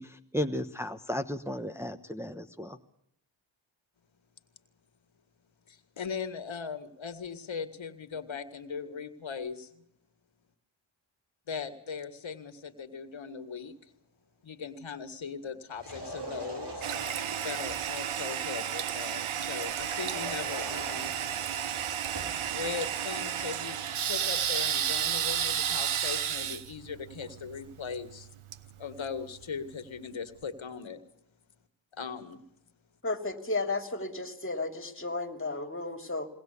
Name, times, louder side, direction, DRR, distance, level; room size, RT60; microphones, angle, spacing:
voice 1, 0.0-2.8, left 1 dB, 5° right, 5 dB, 1.1 m, -34 dB
voice 2, 5.7-9.8 11.5-13.9 14.4-16.9 17.4-21.1 22.5-28.3 28.8-31.0 31.9-32.4, left 6 dB, 70° left, 9 dB, 1.9 m, -39 dB
sound 1, 15.7-17.6 19.8-22.5, right 1 dB, 55° right, 6.4 m, -42 dB
Toilet flush, 16.8-29.5, right 9 dB, 80° right, 1.1 m, -32 dB
voice 3, 33.0-36.3, left 3 dB, 25° left, 7 dB, 3.0 m, -33 dB
22.0 x 18.5 x 8.3 m, 0.73 s
cardioid pair, 50°, 49 cm